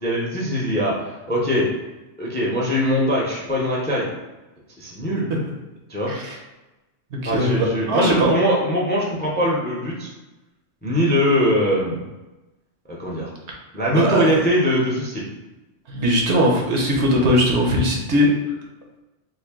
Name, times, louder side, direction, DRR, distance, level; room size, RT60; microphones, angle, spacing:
voice 1, 0.0-1.7 2.2-4.1 4.8-5.3 5.9-6.1 7.2-10.1 10.8-12.0 13.0-13.3 13.7-15.3, equal, 15° left, -4 dB, 0.4 m, -21 dB
voice 2, 7.2-8.3 13.9-14.3 15.9-18.3, equal, 70° right, -1 dB, 0.9 m, -19 dB
3.1 x 2.6 x 3.5 m, 1.1 s
omnidirectional pair, 1.3 m